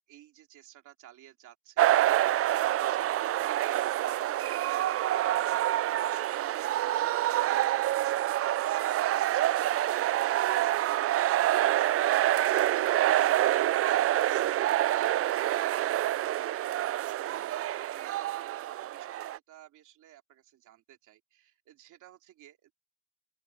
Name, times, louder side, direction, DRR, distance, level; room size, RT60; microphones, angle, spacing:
voice 1, 0.1-18.2 18.8-22.7, right 12 dB, 85° right, 2.7 m, -53 dB
sound 1, 1.8-19.4, right 13 dB, 50° right, 0.4 m, -27 dB
open air
cardioid pair, 90°, 30 cm